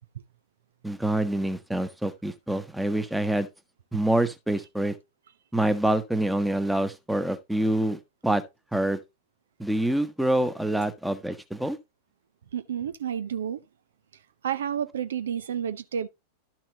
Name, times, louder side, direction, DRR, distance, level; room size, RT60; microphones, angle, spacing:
voice 1, 0.8-3.5 3.9-4.9 5.5-8.4 8.7-9.0 9.6-11.8, right 1 dB, 5° right, 1.1 m, -26 dB
voice 2, 12.5-13.6 14.4-16.1, right 8 dB, 65° right, 0.6 m, -30 dB
12.0 x 5.9 x 2.9 m
figure-of-eight pair, 90°, 0 cm